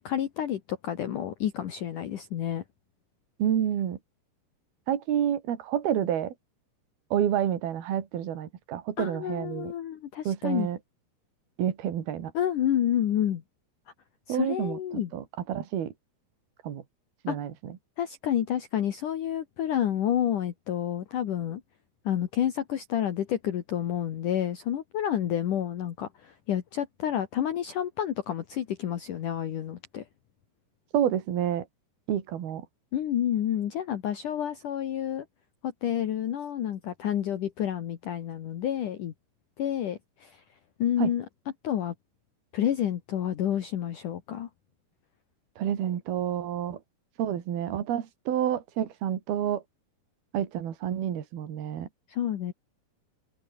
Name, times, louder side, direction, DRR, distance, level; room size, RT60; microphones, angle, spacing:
voice 1, 0.0-2.6 9.0-10.7 12.3-13.4 14.3-15.1 17.3-17.4 18.0-21.6 22.0-30.0 32.9-35.3 35.6-39.1 39.6-40.4 40.8-41.3 41.6-41.9 42.5-44.5 52.1-52.5, left 10 dB, 60° left, 2.8 m, -29 dB
voice 2, 3.4-4.0 4.9-6.3 7.1-9.7 10.3-10.8 11.6-12.3 14.3-15.9 16.6-16.8 17.2-17.8 30.9-31.7 32.1-32.7 41.0-41.1 45.6-46.8 47.2-49.6 50.3-51.9, right 10 dB, 70° right, 4.3 m, -29 dB
open air
omnidirectional pair, 4.7 m